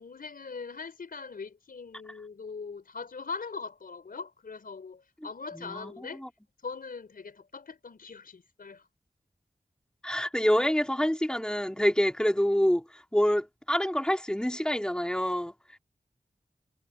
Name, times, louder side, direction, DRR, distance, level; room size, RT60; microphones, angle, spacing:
voice 1, 0.0-6.2 6.6-8.9, left 4 dB, 90° left, 4.8 m, -41 dB
voice 2, 5.5-5.9 6.2-6.3 10.0-15.5, equal, 5° left, 2.6 m, -26 dB
wide cardioid pair, 55°, 15 cm